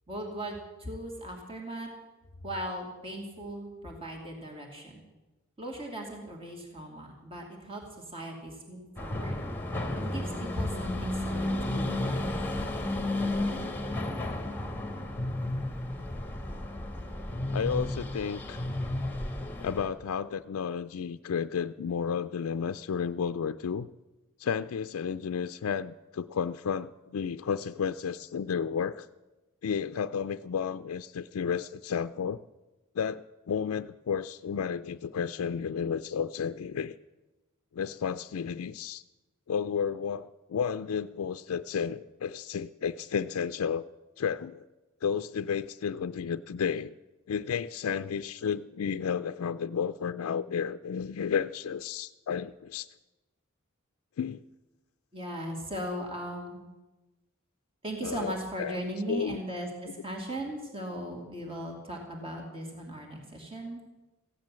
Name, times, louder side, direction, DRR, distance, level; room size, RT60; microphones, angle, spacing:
voice 1, 0.1-1.9 2.4-5.0 5.6-9.4 10.0-12.4 55.1-56.6 57.8-63.8, right 1 dB, 25° right, 1 dB, 2.6 m, -38 dB
sound 1, 9.0-19.9, left 1 dB, 10° left, 1.5 m, -33 dB
voice 2, 17.5-18.6 19.6-23.9 24.4-29.1 29.6-32.4 33.0-36.9 37.7-39.0 39.5-43.8 44.2-44.7 45.0-46.9 47.3-52.9 54.2-54.4 58.0-58.3 58.6-58.8 59.1-59.4, left 7 dB, 85° left, 10 dB, 0.4 m, -32 dB
15.5 x 10.5 x 7.5 m, 1.1 s
head